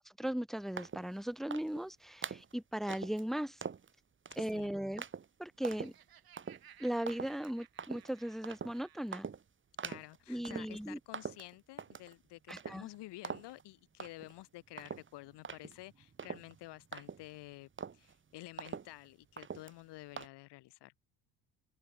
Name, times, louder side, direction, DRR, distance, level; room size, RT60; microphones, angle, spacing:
voice 1, 0.2-3.6 4.4-5.0 5.4-5.9 6.8-9.3 10.3-11.0 12.5-12.8, right 1 dB, ahead, 0.5 m, -37 dB
sound 1, 0.8-1.1 1.5-1.8 2.2-2.5 2.9-3.2 3.6-3.9 4.2-4.6 5.0-5.3 5.6-6.0 6.4-6.6 7.1-7.5 7.8-8.1 8.4-8.8 9.1-9.4 9.8-10.2 10.4-10.8 11.1-12.1 12.5-13.0 13.2-13.6 14.0-14.4 14.8-17.4 17.8-18.1 18.6-19.1 19.4-19.8 20.2-20.3, right 6 dB, 25° right, 1.2 m, -43 dB
voice 2, 4.4-4.8 9.8-20.9, left 18 dB, 65° left, 1.1 m, -51 dB
Laughter, 5.5-9.3, right 10 dB, 50° right, 3.4 m, -60 dB
open air
supercardioid pair, 75°, 45 cm